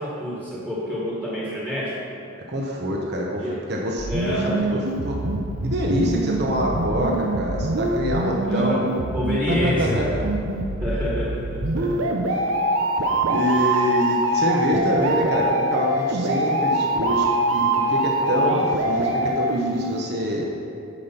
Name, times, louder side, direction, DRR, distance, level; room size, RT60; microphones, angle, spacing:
voice 1, 0.0-2.0 3.4-3.6 4.1-4.9 8.5-8.9 9.1-10.1 10.8-11.6 18.3-18.7, equal, 10° right, -7 dB, 1.7 m, -28 dB
voice 2, 2.5-3.4 3.7-4.3 4.7-5.2 5.6-8.9 9.5-10.2 11.8-12.1 13.3-20.5, equal, 50° right, -2 dB, 1.1 m, -25 dB
sound 1, 4.0-20.0, right 1 dB, 80° right, 0.8 m, -24 dB
10.0 x 5.3 x 5.8 m, 2.7 s
head